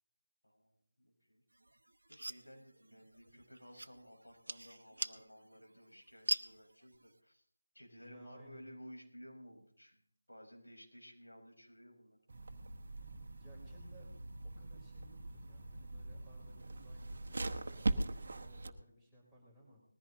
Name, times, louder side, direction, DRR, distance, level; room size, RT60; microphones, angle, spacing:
voice 1, 0.4-1.4 2.1-7.4 7.7-10.0 10.3-12.2, equal, 80° left, 0 dB, 4.8 m, -56 dB
sound 1, 1.5-7.2, right 2 dB, 70° right, 0.7 m, -44 dB
voice 2, 8.0-8.7 13.3-14.1 14.4-19.8, right 1 dB, ahead, -7 dB, 3.5 m, -61 dB
sound 2, 12.3-18.7, right 2 dB, 50° right, 1.1 m, -41 dB
20.0 x 14.5 x 2.8 m, 0.65 s
figure-of-eight pair, 160°, 0 cm